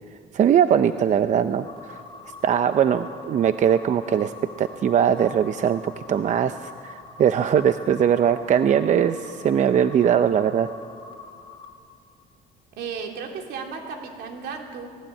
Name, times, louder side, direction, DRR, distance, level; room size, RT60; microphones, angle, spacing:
voice 1, 0.3-2.0 2.4-10.7, right 9 dB, 45° right, 11 dB, 0.6 m, -21 dB
sound 1, 1.6-11.7, left 4 dB, 30° left, 2.7 m, -44 dB
voice 2, 12.8-15.0, right 5 dB, 80° right, 3 dB, 3.1 m, -34 dB
18.5 x 18.0 x 8.5 m, 2.2 s
cardioid pair, 110°, 17 cm